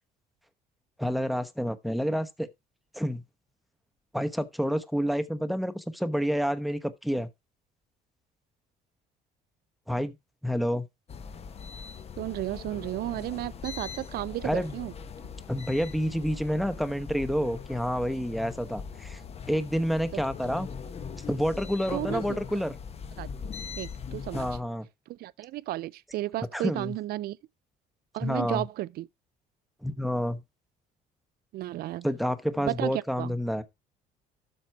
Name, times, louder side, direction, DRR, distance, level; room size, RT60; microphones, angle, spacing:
voice 1, 1.0-2.5 2.9-3.2 4.1-7.3 9.9-10.1 10.4-10.9 14.4-14.8 15.5-19.2 19.5-20.7 21.3-22.8 24.3-24.9 26.5-26.9 28.2-28.6 29.8-30.4 32.0-33.6, equal, ahead, 1.0 m, -29 dB
sound 1, 11.1-24.6, left 6 dB, 35° left, 1.1 m, -40 dB
voice 2, 12.2-14.9 20.1-20.2 21.2-21.3 21.9-22.6 23.2-23.3 23.8-24.5 25.1-27.4 28.1-29.1 31.5-32.1 32.6-33.3, right 16 dB, 65° right, 0.5 m, -33 dB
12.5 x 4.3 x 4.6 m
cardioid pair, 110°, 17 cm